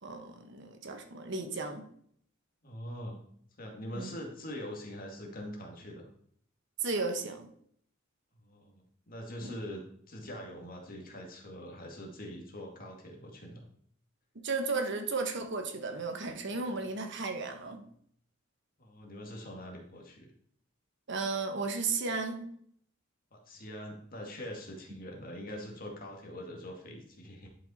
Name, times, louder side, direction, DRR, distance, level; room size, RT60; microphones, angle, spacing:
voice 1, 0.0-1.8 3.9-4.2 6.8-7.5 9.4-9.5 14.4-17.8 21.1-22.5, right 4 dB, 60° right, 6 dB, 1.2 m, -34 dB
voice 2, 2.6-3.2 3.6-6.1 8.4-9.8 10.1-13.6 18.8-20.3 23.3-27.5, equal, 45° left, 1 dB, 2.0 m, -43 dB
11.0 x 5.6 x 4.2 m, 0.65 s
head